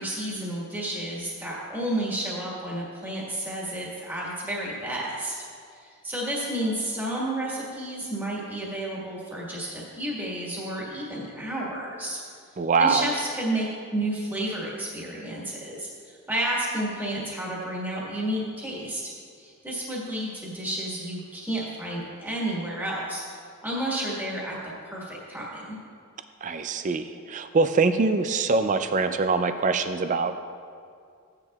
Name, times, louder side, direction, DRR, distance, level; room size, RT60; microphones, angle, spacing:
voice 1, 0.0-5.3 5.8-12.2 12.8-19.1 19.4-23.2 23.6-25.8, right 1 dB, 10° right, -6 dB, 1.6 m, -31 dB
voice 2, 12.6-13.1 26.4-30.3, right 4 dB, 35° right, 9 dB, 0.4 m, -23 dB
15.0 x 9.8 x 2.4 m, 2.3 s
head